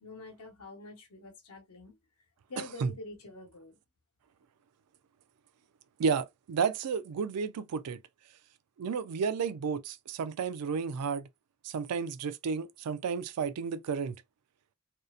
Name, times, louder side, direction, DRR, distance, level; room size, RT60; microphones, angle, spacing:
voice 1, 0.0-2.0 2.5-3.8, left 2 dB, 85° left, 0.9 m, -46 dB
voice 2, 6.0-8.0 8.8-11.3 11.6-14.2, right 5 dB, 85° right, 0.4 m, -32 dB
2.7 x 2.0 x 2.3 m
head